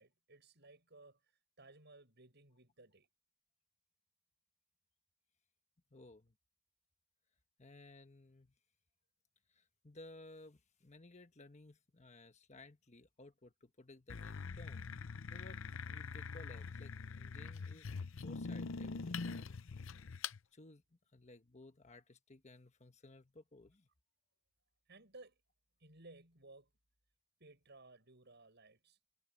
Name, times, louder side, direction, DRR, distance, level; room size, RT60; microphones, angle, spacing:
voice 1, 0.0-3.1 24.9-25.4 25.8-26.7 27.4-29.0, right 2 dB, 55° right, 8.0 m, -59 dB
voice 2, 5.9-6.3 7.6-8.5 9.5-14.9 15.3-19.6 20.5-23.9, left 2 dB, 35° left, 1.2 m, -58 dB
sound 1, 14.1-20.4, left 4 dB, 65° left, 0.7 m, -44 dB
head